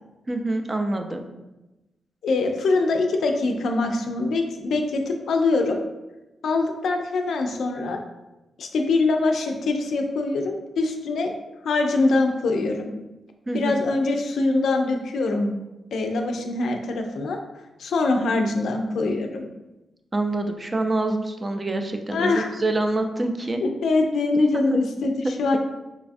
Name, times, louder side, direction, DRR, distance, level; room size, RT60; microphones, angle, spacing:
voice 1, 0.3-1.3 13.5-13.8 20.1-23.6 24.5-24.8, right 2 dB, 25° right, 5 dB, 0.3 m, -26 dB
voice 2, 2.2-5.8 6.4-8.0 8.6-11.3 11.6-12.9 13.5-15.5 15.9-17.4 17.8-19.5 22.1-22.5 23.6-25.6, left 3 dB, 80° left, 4 dB, 0.4 m, -23 dB
4.0 x 2.3 x 2.5 m, 1.0 s
cardioid pair, 105°, 0 cm